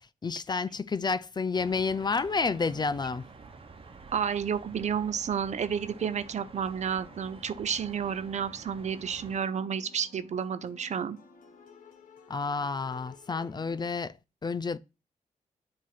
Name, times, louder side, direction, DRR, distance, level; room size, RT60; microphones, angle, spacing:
voice 1, 0.2-3.2 12.3-14.1 14.4-14.8, left 4 dB, 30° left, 0.4 m, -30 dB
sound 1, 1.5-9.4, right 4 dB, 45° right, 1.1 m, -49 dB
voice 2, 4.1-11.2, right 7 dB, 60° right, 0.6 m, -31 dB
sound 2, 5.8-13.9, left 5 dB, 80° left, 1.0 m, -55 dB
7.4 x 2.9 x 5.7 m
cardioid pair, 60°, 14 cm